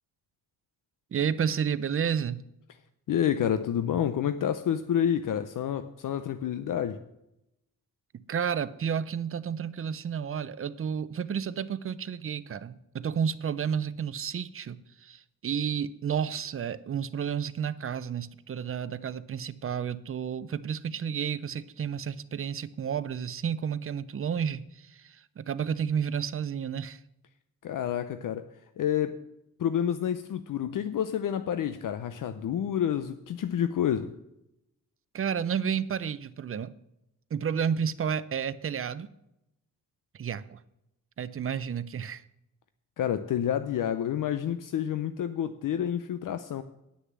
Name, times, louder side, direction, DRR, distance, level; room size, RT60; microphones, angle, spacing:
voice 1, 1.1-2.5 8.3-27.0 35.1-36.7 37.3-39.1 40.1-40.6 41.2-42.2, right 7 dB, 40° right, 16 dB, 0.6 m, -31 dB
voice 2, 3.1-7.0 27.6-28.5 28.8-29.2 29.6-34.1 43.0-46.6, left 9 dB, 70° left, 10 dB, 0.6 m, -29 dB
9.6 x 6.6 x 7.5 m, 0.87 s
cardioid pair, 90°, 33 cm